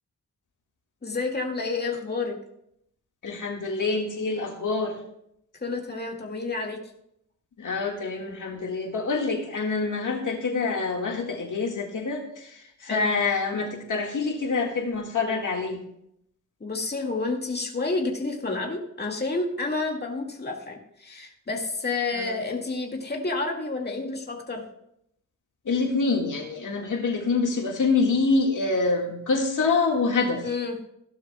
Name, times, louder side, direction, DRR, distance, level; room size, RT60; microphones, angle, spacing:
voice 1, 1.0-2.4 5.6-6.8 12.8-13.1 16.6-24.6 30.4-30.8, left 3 dB, 30° left, 0 dB, 2.0 m, -30 dB
voice 2, 3.2-4.9 7.6-15.8 22.2-22.3 25.7-30.4, left 4 dB, 75° left, 1 dB, 1.9 m, -26 dB
16.0 x 11.5 x 2.3 m, 0.74 s
wide cardioid pair, 90°, 32 cm